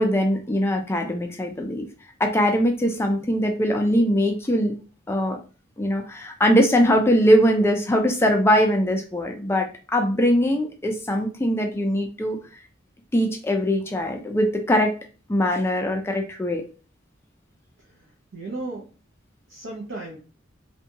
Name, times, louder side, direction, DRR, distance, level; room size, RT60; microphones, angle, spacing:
voice 1, 0.0-1.9 2.2-4.7 5.1-5.4 5.8-12.4 13.1-15.0 15.3-16.6, equal, 15° left, 3 dB, 0.3 m, -21 dB
voice 2, 17.8-18.9 19.5-20.2, right 2 dB, 70° right, -2 dB, 0.6 m, -35 dB
2.6 x 2.2 x 2.7 m, 0.36 s
head